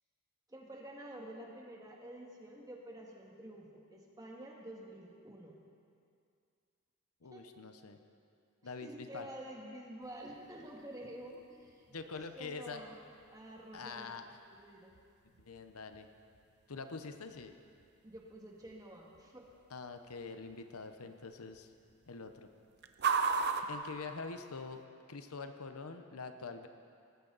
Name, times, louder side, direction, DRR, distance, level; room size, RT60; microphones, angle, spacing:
voice 1, 0.5-5.6 7.3-7.5 8.6-11.8 12.4-12.9 13.3-14.1 14.5-14.9 18.0-19.5, right 1 dB, 15° right, -2 dB, 2.0 m, -49 dB
voice 2, 7.2-8.0 8.6-9.3 11.9-12.8 13.7-14.2 15.4-16.1 16.7-17.5 19.7-21.7 22.1-22.5 23.7-24.8 25.1-26.7, left 4 dB, 80° left, 7 dB, 0.9 m, -45 dB
sound 1, 10.0-24.8, right 5 dB, 50° right, 0.7 m, -42 dB
19.5 x 13.5 x 4.1 m, 2.4 s
head